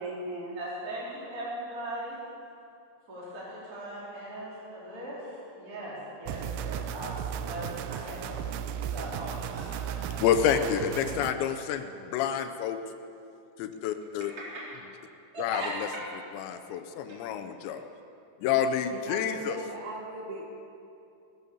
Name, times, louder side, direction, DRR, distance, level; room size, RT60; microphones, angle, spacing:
voice 1, 0.0-0.6 18.9-20.4, right 1 dB, 65° right, -1 dB, 3.2 m, -38 dB
voice 2, 0.5-2.2 3.1-10.6 11.1-11.2 14.5-14.6 15.3-15.7, right 1 dB, 20° right, -8 dB, 4.2 m, -39 dB
sound 1, 6.3-11.3, right 9 dB, 80° right, 2.4 m, -35 dB
voice 3, 10.2-12.8 13.6-14.3 15.4-15.9 16.3-17.8 18.4-19.6, left 8 dB, 80° left, 8 dB, 3.0 m, -28 dB
19.0 x 10.0 x 7.0 m, 2.6 s
omnidirectional pair, 5.2 m